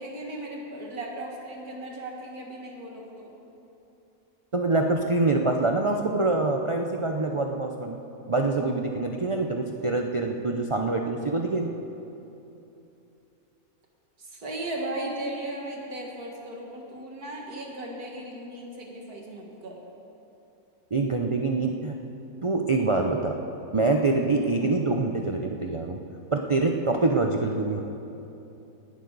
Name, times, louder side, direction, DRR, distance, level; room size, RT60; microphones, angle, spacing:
voice 1, 0.0-3.3 14.2-19.8 24.6-24.8, right 1 dB, 85° right, -1 dB, 2.4 m, -36 dB
voice 2, 4.5-8.0 8.3-11.7 20.9-22.0 22.4-23.4 23.7-26.0 26.3-27.8, right 3 dB, 40° right, 3 dB, 0.4 m, -25 dB
19.0 x 11.5 x 4.0 m, 2.9 s
omnidirectional pair, 1.5 m